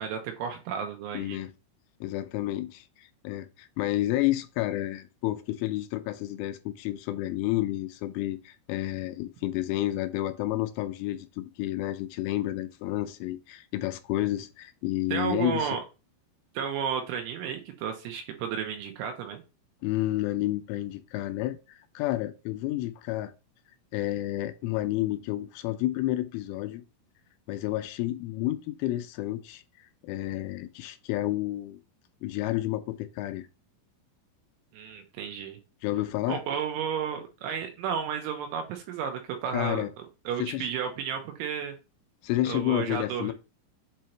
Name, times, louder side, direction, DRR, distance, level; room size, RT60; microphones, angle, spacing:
voice 1, 0.0-1.4 15.1-15.8 16.5-19.4 34.7-35.6 36.3-39.9 40.3-41.7 42.5-43.3, right 7 dB, 80° right, 3.1 m, -32 dB
voice 2, 1.1-1.5 2.0-15.8 19.8-23.3 23.9-26.8 27.5-31.8 32.2-33.5 35.8-36.4 39.5-39.9 40.4-40.7 42.2-43.3, left 15 dB, 85° left, 2.9 m, -30 dB
7.6 x 2.8 x 4.4 m
omnidirectional pair, 6.0 m